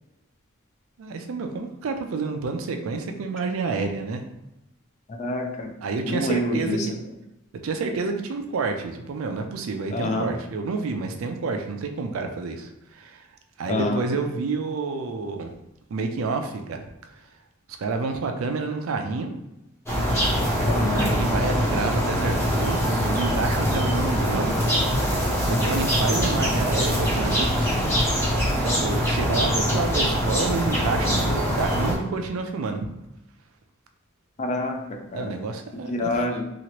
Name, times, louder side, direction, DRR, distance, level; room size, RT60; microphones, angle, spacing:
voice 1, 1.0-4.2 5.8-6.9 7.6-13.3 13.6-15.5 15.9-16.9 17.8-19.3 20.9-24.6 25.5-27.5 28.5-32.8 35.1-36.1, right 4 dB, 80° right, 5 dB, 0.4 m, -29 dB
voice 2, 5.1-5.7 6.1-6.9 9.9-10.3 13.7-14.1 20.7-21.1 34.4-35.3 35.9-36.4, left 1 dB, 35° left, 3 dB, 0.4 m, -27 dB
sound 1, 19.9-31.9, equal, 15° left, 0.8 m, -23 dB
3.0 x 2.4 x 2.9 m, 0.91 s
head